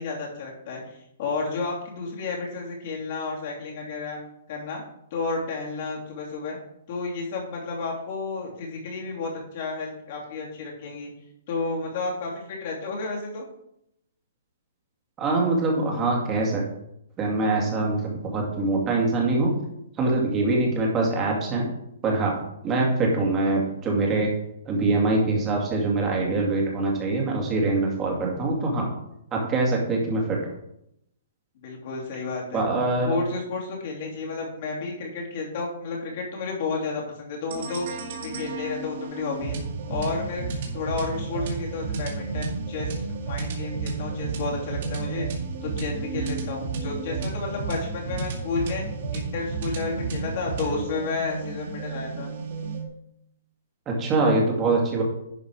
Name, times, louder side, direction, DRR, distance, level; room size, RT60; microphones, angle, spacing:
voice 1, 0.0-4.2 4.5-4.8 5.1-6.6 6.9-11.1 11.5-13.5 31.5-32.6 33.0-37.9 38.2-39.6 39.9-40.4 40.7-45.3 45.6-48.8 49.1-52.3, left 4 dB, 40° left, -2 dB, 2.9 m, -31 dB
voice 2, 15.2-16.6 17.2-19.6 20.0-21.7 22.0-22.3 22.6-24.3 24.7-28.9 29.3-30.4 32.5-33.2 53.9-55.0, right 2 dB, 15° right, -2 dB, 2.2 m, -23 dB
sound 1, 37.5-52.9, right 4 dB, 45° right, 2.4 m, -32 dB
11.0 x 5.0 x 4.9 m, 0.79 s
hypercardioid pair, 165°, 0 cm